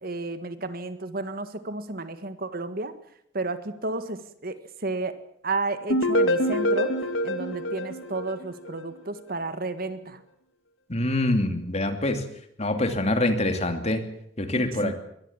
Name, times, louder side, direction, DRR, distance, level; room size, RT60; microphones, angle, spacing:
voice 1, 0.0-2.9 3.3-5.2 5.4-6.9 7.2-10.2 14.5-14.9, right 2 dB, 50° right, 11 dB, 1.7 m, -32 dB
sound 1, 5.9-8.8, equal, 85° left, 2.2 m, -25 dB
voice 2, 10.9-12.2 12.6-14.0 14.4-14.9, left 1 dB, 35° left, 7 dB, 2.7 m, -25 dB
22.5 x 19.0 x 7.4 m, 0.72 s
head